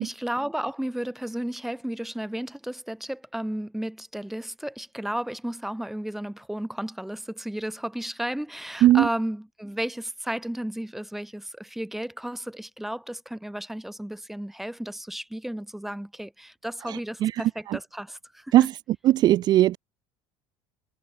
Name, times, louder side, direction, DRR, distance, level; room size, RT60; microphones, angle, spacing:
voice 1, 0.0-18.6, right 1 dB, ahead, 5.8 m, -33 dB
voice 2, 16.9-17.3 17.7-17.8 18.5-18.7 19.0-19.8, right 14 dB, 40° right, 0.5 m, -19 dB
cardioid pair, 160°, 12 cm